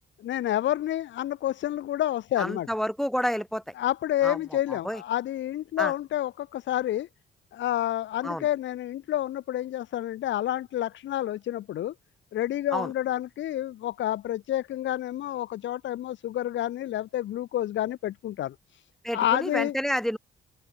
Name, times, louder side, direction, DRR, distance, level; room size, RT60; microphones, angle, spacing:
voice 1, 0.2-2.7 3.8-7.1 7.5-11.9 12.3-18.8 19.1-19.7, left 12 dB, 70° left, 0.9 m, -29 dB
voice 2, 2.4-3.6 4.2-4.4 4.7-5.0 5.8-5.9 8.2-8.5 12.7-12.9 19.0-20.2, equal, ahead, 3.1 m, -29 dB
cardioid pair, 90°, 20 cm